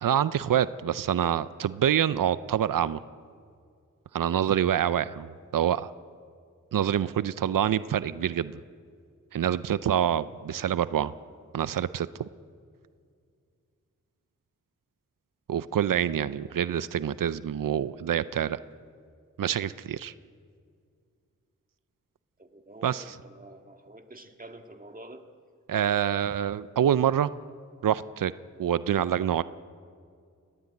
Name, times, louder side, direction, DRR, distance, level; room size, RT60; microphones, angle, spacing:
voice 1, 0.0-3.0 4.1-5.9 6.7-8.6 9.3-11.1 11.5-12.3 15.5-18.6 19.4-20.1 22.8-23.0 25.7-27.3 27.8-28.3 28.6-29.4, right 9 dB, 90° right, 15 dB, 0.6 m, -26 dB
voice 2, 22.4-23.0 23.2-25.2, right 1 dB, 25° right, 5 dB, 1.9 m, -47 dB
21.0 x 16.0 x 9.4 m, 2.2 s
wide cardioid pair, 65°, 32 cm